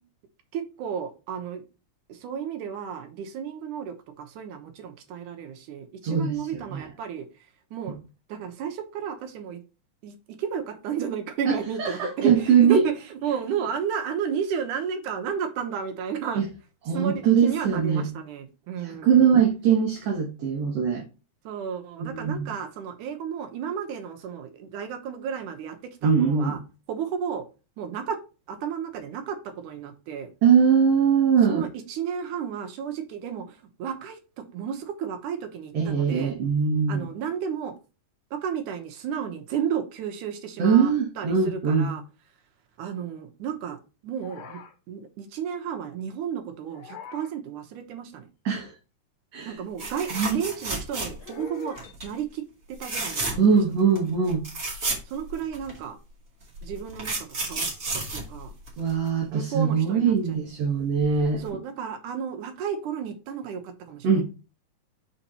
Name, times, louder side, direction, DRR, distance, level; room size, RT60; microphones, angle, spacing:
voice 1, 0.5-1.6 2.1-7.3 7.7-8.0 8.3-9.6 10.0-16.4 16.9-19.2 21.4-26.6 26.9-27.5 27.8-28.2 28.5-30.3 31.5-36.3 36.9-37.8 38.3-42.0 42.8-43.8 44.0-44.6 44.9-48.3 49.5-52.4 52.7-53.6 55.1-56.0 56.6-57.7 58.1-58.5 59.3-60.4 61.4-64.2, right 8 dB, 80° right, 2.6 m, -33 dB
voice 2, 6.0-6.9 11.8-12.8 16.4-16.5 16.9-18.1 18.8-21.0 22.0-22.5 26.0-26.6 30.4-31.7 35.7-37.1 40.6-41.9 48.5-48.7 49.3-49.6 50.1-50.4 53.4-54.5 58.8-61.4 64.0-64.2, right 6 dB, 60° right, 2.2 m, -22 dB
sound 1, 44.2-44.7 46.7-47.3 51.2-51.9, left 5 dB, 70° left, 2.2 m, -42 dB
sound 2, 49.8-51.4 51.8-52.1 52.7-53.6 54.0-54.1 54.3-55.8 56.5-59.1 61.0-61.2 61.5-61.6, right 3 dB, 30° right, 2.2 m, -31 dB
6.4 x 4.2 x 4.3 m
omnidirectional pair, 3.6 m